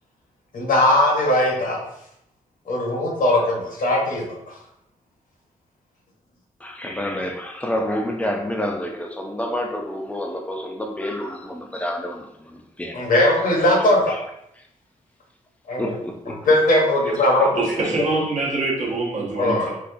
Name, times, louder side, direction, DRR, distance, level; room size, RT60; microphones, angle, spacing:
voice 1, 0.5-1.8 2.7-4.4 12.9-14.2 15.7-15.9 16.5-17.6 19.4-19.7, left 1 dB, 75° left, 1.0 m, -19 dB
voice 2, 6.6-13.3 13.7-14.2 14.6-14.7 15.8-16.5 17.3-18.0, left 1 dB, 10° left, 0.4 m, -29 dB
voice 3, 17.5-19.8, right 3 dB, 60° right, 0.9 m, -24 dB
4.1 x 2.2 x 2.6 m
wide cardioid pair, 115°, 14 cm